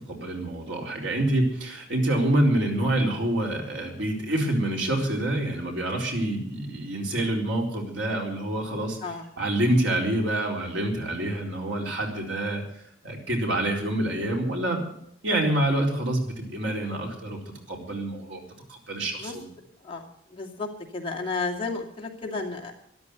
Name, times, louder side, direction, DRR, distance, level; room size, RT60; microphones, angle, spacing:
voice 1, 0.1-12.6 13.0-14.8 15.2-17.4 17.7-18.4 18.7-19.5, right 1 dB, 75° right, 0 dB, 4.1 m, -27 dB
voice 2, 20.3-20.7 20.9-22.8, left 3 dB, 30° left, 1 dB, 2.5 m, -32 dB
13.5 x 11.5 x 8.1 m, 0.70 s
head